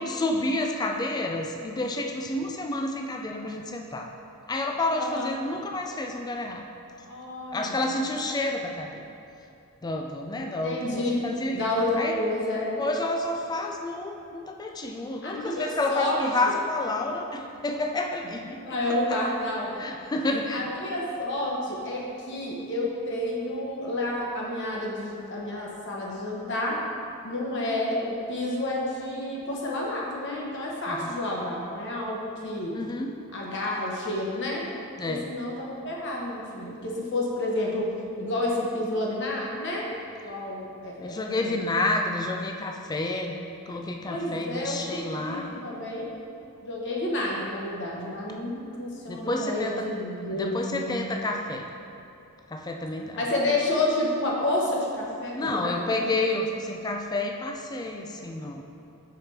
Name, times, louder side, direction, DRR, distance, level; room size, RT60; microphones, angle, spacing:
voice 1, 0.0-4.1 4.5-6.6 6.9-7.0 7.5-9.0 9.8-11.7 12.0-12.2 12.8-18.8 19.1-19.2 19.8-20.7 30.9-31.1 32.7-33.2 35.0-35.3 41.0-43.4 43.7-45.5 49.1-49.9 50.3-51.7 52.5-53.2 55.4-58.6, left 2 dB, 20° left, 2 dB, 0.3 m, -29 dB
voice 2, 5.0-5.3 7.1-7.8 10.6-12.8 15.2-16.2 18.6-19.8 20.5-26.8 27.2-32.7 33.3-34.7 35.1-37.9 38.2-39.9 40.2-41.5 44.0-46.1 46.6-51.0 53.1-56.1, left 1 dB, 55° left, -3 dB, 1.0 m, -30 dB
5.0 x 4.4 x 4.5 m, 2.7 s
head